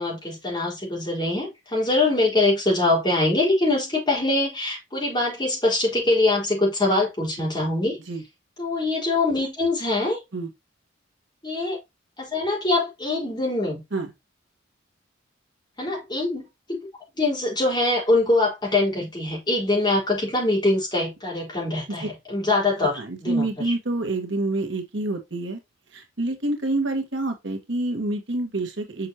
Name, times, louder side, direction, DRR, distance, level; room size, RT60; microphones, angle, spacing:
voice 1, 0.0-8.0 8.6-10.2 11.4-11.8 12.2-13.8 15.8-16.8 17.2-23.5, left 2 dB, 20° left, 4.3 m, -23 dB
voice 2, 22.8-25.6 25.9-29.1, right 2 dB, 65° right, 1.6 m, -27 dB
6.6 x 6.2 x 2.8 m
head